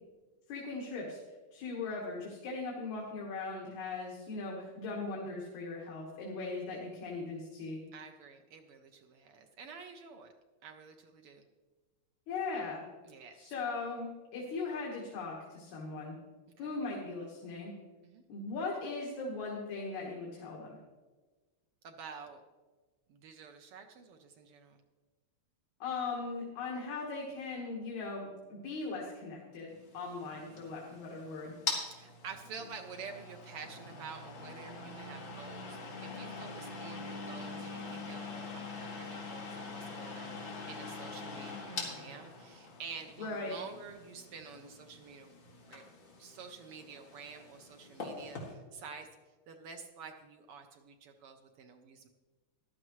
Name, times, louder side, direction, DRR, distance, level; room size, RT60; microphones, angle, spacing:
voice 1, 0.5-1.2 1.5-7.8 12.3-12.8 13.3-16.2 16.6-17.7 18.3-20.8 25.8-31.5 43.2-43.6, left 3 dB, 80° left, -3 dB, 2.9 m, -39 dB
voice 2, 7.9-10.3 10.6-11.4 13.1-13.5 16.6-16.8 18.0-18.2 21.8-22.4 23.1-24.8 31.8-45.3 45.7-45.9 46.2-49.1 49.5-52.1, right 5 dB, 75° right, 5 dB, 1.3 m, -49 dB
sound 1, 29.8-48.5, left 3 dB, 45° left, 2.7 m, -44 dB
15.0 x 11.5 x 3.1 m, 1.3 s
omnidirectional pair, 3.3 m